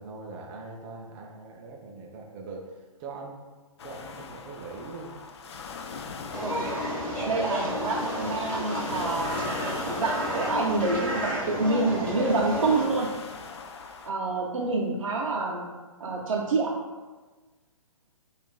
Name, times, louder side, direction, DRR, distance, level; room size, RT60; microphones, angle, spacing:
voice 1, 0.0-3.4 3.8-5.2, right 3 dB, 15° right, -1 dB, 0.4 m, -42 dB
sound 1, 3.8-14.1, left 5 dB, 50° left, 0.4 m, -41 dB
sound 2, 6.3-12.9, equal, 5° left, 1.4 m, -31 dB
voice 2, 6.4-6.8 7.2-9.4 9.8-13.1 14.0-15.7 16.0-16.8, right 3 dB, 70° right, -2 dB, 0.6 m, -27 dB
7.0 x 2.5 x 2.3 m, 1.3 s
figure-of-eight pair, 135°, 18 cm